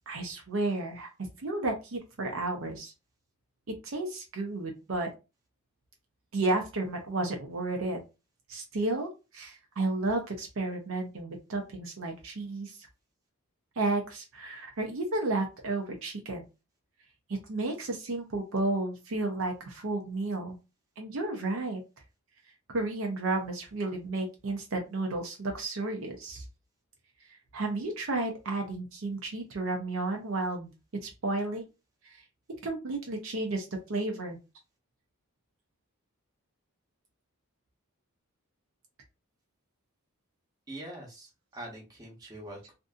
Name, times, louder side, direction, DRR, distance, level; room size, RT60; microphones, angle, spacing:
voice 1, 0.1-1.1 1.4-2.9 3.8-5.1 6.3-8.0 8.5-12.9 13.8-16.4 17.3-20.6 21.0-21.8 22.7-26.4 27.3-30.7 31.0-31.6 32.0-32.2 32.6-34.4, right 2 dB, 60° right, 3 dB, 0.6 m, -32 dB
voice 2, 40.7-42.7, right 1 dB, 15° right, -2 dB, 0.9 m, -44 dB
2.6 x 2.5 x 2.3 m, 0.28 s
head